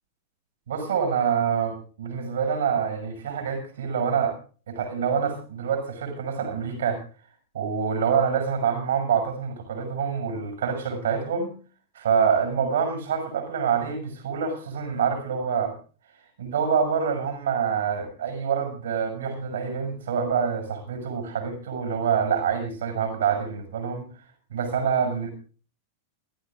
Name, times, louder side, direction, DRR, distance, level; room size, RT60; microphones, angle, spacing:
voice 1, 0.7-4.4 4.7-7.0 7.5-11.5 11.9-15.7 16.4-24.1 24.5-25.3, right 7 dB, 65° right, 6 dB, 6.7 m, -26 dB
27.5 x 13.5 x 2.5 m, 0.37 s
figure-of-eight pair, 90°, 0 cm